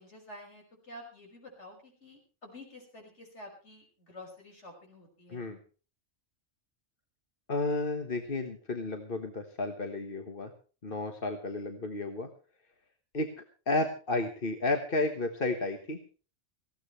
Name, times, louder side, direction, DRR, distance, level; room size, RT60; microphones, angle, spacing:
voice 1, 0.0-5.5, left 1 dB, 65° left, 1 dB, 6.3 m, -50 dB
voice 2, 7.5-10.5 10.8-12.3 13.1-13.3 13.7-16.0, left 2 dB, 45° left, 5 dB, 1.6 m, -32 dB
19.5 x 15.5 x 3.3 m, 0.37 s
omnidirectional pair, 1.3 m